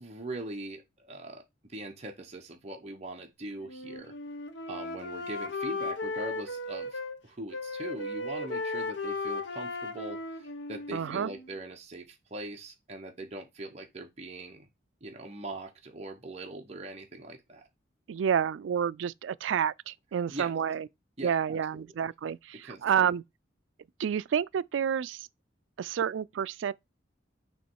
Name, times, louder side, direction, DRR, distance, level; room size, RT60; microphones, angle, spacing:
voice 1, 0.0-1.4 1.7-4.1 4.7-14.7 15.0-17.7 20.3-20.5 21.2-21.6 22.6-22.8, right 2 dB, 35° right, 0.9 m, -41 dB
Wind instrument woodwind instrument, 3.7-7.2 7.5-11.5, left 2 dB, 70° left, 1.0 m, -36 dB
voice 2, 10.9-11.3 18.1-20.9 21.2-23.2 24.0-25.3 25.8-26.7, right 8 dB, 85° right, 0.3 m, -29 dB
7.0 x 3.1 x 4.6 m
head